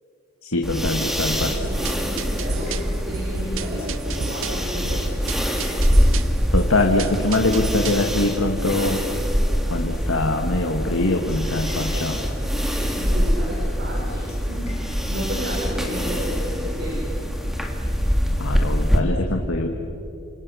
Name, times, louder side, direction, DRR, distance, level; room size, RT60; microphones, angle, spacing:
voice 1, 0.4-1.5 6.5-9.1 9.7-12.2 18.4-19.7, left 2 dB, 80° left, 3 dB, 1.8 m, -23 dB
sound 1, 0.6-19.0, equal, ahead, 2.0 m, -24 dB
sound 2, 0.8-18.5, equal, 30° left, 4.7 m, -35 dB
voice 2, 1.3-5.0 12.9-14.7 15.1-17.1, equal, 50° right, -4 dB, 5.8 m, -32 dB
sound 3, 1.4-8.1, right 6 dB, 70° right, 0.7 m, -33 dB
28.5 x 27.0 x 6.3 m, 2.8 s
head